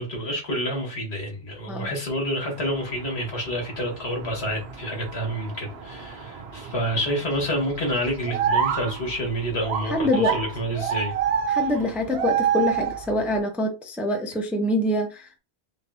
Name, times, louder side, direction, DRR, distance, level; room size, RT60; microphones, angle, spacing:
voice 1, 0.0-11.1, equal, 75° left, 1.8 m, -28 dB
sound 1, 2.6-13.4, right 8 dB, 70° right, 0.9 m, -29 dB
voice 2, 9.9-10.4 11.5-15.4, left 1 dB, ahead, 0.5 m, -25 dB
5.1 x 2.8 x 2.7 m
omnidirectional pair, 1.1 m